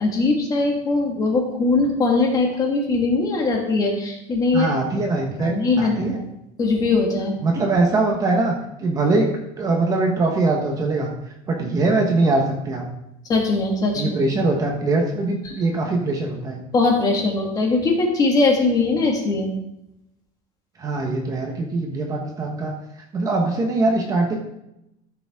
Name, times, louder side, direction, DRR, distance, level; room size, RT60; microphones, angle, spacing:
voice 1, 0.0-4.7 5.4-6.3 6.6-7.4 13.3-14.0 15.4-15.5 16.7-19.5, left 3 dB, 20° left, 1 dB, 1.8 m, -20 dB
voice 2, 4.5-6.2 7.4-8.5 8.8-9.3 9.6-11.1 11.5-12.8 14.0-16.6 20.8-22.7 23.1-24.4, right 2 dB, 20° right, 1 dB, 1.2 m, -22 dB
13.5 x 7.0 x 3.6 m, 0.84 s
cardioid pair, 180°, 17 cm